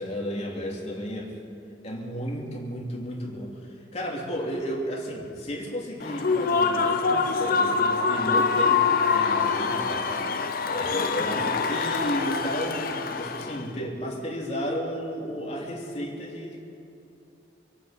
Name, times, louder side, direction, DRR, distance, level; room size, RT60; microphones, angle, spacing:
voice 1, 0.0-1.4 1.8-10.3 10.6-16.6, equal, 35° left, -3 dB, 3.0 m, -33 dB
Human voice / Cheering / Applause, 6.0-13.7, left 5 dB, 55° left, 0.8 m, -25 dB
27.5 x 9.6 x 5.2 m, 2.6 s
head